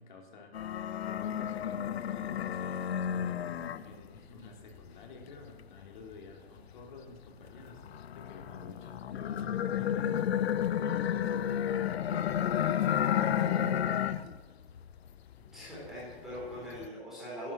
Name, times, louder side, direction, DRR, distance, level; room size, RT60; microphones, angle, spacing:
voice 1, 0.0-14.0, left 3 dB, 50° left, 2 dB, 3.2 m, -51 dB
sound 1, 0.5-4.2 4.6-6.9 7.4-14.4 14.7-15.5 15.8-16.9, left 9 dB, 80° left, 0.8 m, -32 dB
voice 2, 15.5-17.5, equal, ahead, -9 dB, 4.2 m, -42 dB
11.5 x 11.5 x 7.3 m, 1.3 s
hypercardioid pair, 170°, 31 cm